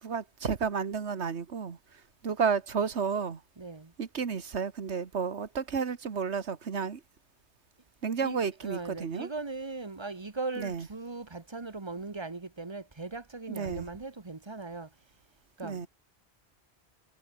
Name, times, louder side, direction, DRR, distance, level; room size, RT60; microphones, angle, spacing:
voice 1, 0.0-3.4 4.0-7.0 8.0-9.3 10.6-10.9 13.5-13.9 15.6-15.9, right 6 dB, 85° right, 1.7 m, -32 dB
voice 2, 3.6-3.9 8.2-14.9 15.6-15.9, right 3 dB, 25° right, 1.3 m, -39 dB
omnidirectional pair, 1.1 m